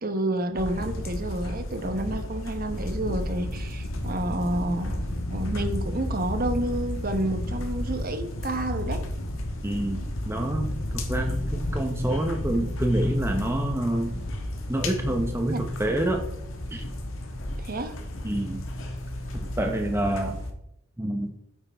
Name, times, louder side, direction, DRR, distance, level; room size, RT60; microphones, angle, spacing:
voice 1, 0.0-5.0 5.3-9.0 15.5-15.6 17.6-17.9, right 1 dB, 40° right, 8 dB, 0.9 m, -29 dB
sound 1, 0.6-20.5, left 1 dB, 60° left, 1.4 m, -32 dB
voice 2, 9.6-14.2 14.7-16.2 16.7-16.9 18.2-18.6 19.3-20.4 21.0-21.3, right 1 dB, 10° right, 3 dB, 0.7 m, -27 dB
9.3 x 8.2 x 3.4 m, 0.76 s
head